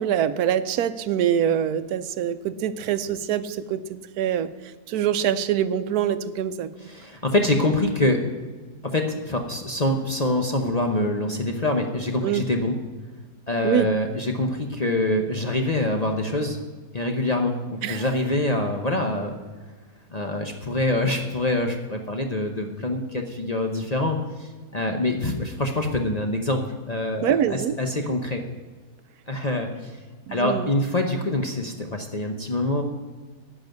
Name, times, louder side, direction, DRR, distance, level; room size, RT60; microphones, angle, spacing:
voice 1, 0.0-4.5 4.9-6.7 12.2-12.4 13.6-13.9 17.8-18.0 27.2-27.8 30.3-30.7, right 9 dB, 75° right, 13 dB, 1.1 m, -24 dB
voice 2, 6.8-8.2 8.9-12.7 13.5-16.6 16.9-19.3 20.1-28.4 29.3-29.9 30.3-32.8, left 1 dB, 35° left, 3 dB, 0.7 m, -25 dB
10.5 x 6.2 x 9.0 m, 1.4 s
omnidirectional pair, 1.7 m